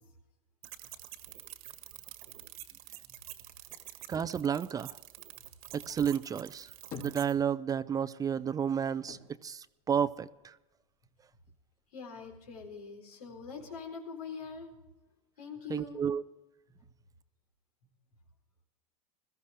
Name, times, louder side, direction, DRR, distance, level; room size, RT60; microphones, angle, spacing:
sound 1, 0.6-7.3, right 15 dB, 75° right, 1.6 m, -48 dB
voice 1, 4.1-5.0 5.7-6.7 7.0-10.5 15.7-16.2, right 8 dB, 20° right, 15 dB, 0.4 m, -31 dB
sound 2, 6.5-7.9 8.3-10.6 11.0-11.9, left 4 dB, 55° left, 4.2 m, -49 dB
voice 2, 11.9-14.8 15.4-16.0, left 5 dB, 90° left, 2 dB, 4.1 m, -43 dB
21.0 x 14.5 x 3.5 m, 1.0 s
supercardioid pair, 120°, 19 cm